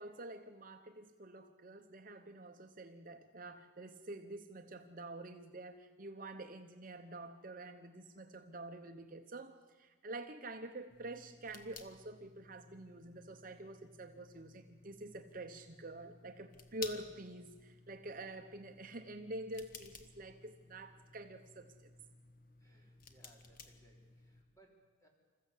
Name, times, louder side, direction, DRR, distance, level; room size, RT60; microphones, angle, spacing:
voice 1, 0.0-21.9, right 2 dB, 40° right, 5 dB, 0.9 m, -47 dB
sound 1, 10.9-24.4, left 4 dB, 45° left, 1.4 m, -56 dB
voice 2, 22.6-25.1, right 1 dB, 15° left, -1 dB, 4.1 m, -67 dB
27.0 x 14.5 x 8.3 m, 1.4 s
head